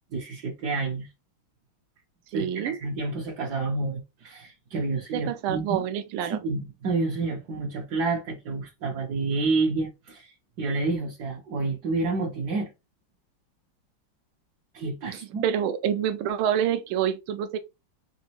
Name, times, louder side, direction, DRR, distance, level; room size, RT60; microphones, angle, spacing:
voice 1, 0.1-1.1 2.3-5.8 6.2-12.7 14.7-15.5, right 3 dB, 60° right, 1.2 m, -29 dB
voice 2, 2.3-2.8 5.1-6.4 15.1-17.6, right 9 dB, 85° right, 1.5 m, -27 dB
4.0 x 3.5 x 2.9 m
omnidirectional pair, 2.3 m